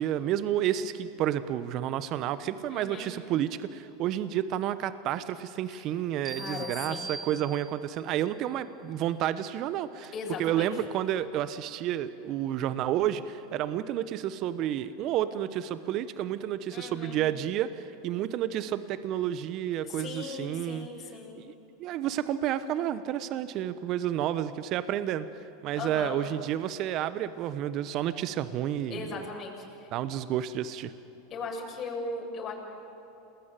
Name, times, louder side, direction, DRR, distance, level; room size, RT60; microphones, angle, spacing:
voice 1, 0.0-10.1 10.4-20.9 21.4-21.5 21.8-25.3 25.6-29.3 29.9-30.9, right 11 dB, 50° right, 13 dB, 1.1 m, -30 dB
voice 2, 2.7-3.1 5.7-5.8 6.3-7.1 10.1-10.7 16.7-17.2 19.8-21.4 25.8-26.2 28.9-29.6 31.3-32.5, left 4 dB, 35° left, -1 dB, 6.7 m, -38 dB
sound 1, 6.2-8.1, right 4 dB, 20° right, 2.0 m, -41 dB
29.0 x 20.0 x 9.2 m, 3.0 s
hypercardioid pair, 95°, 0 cm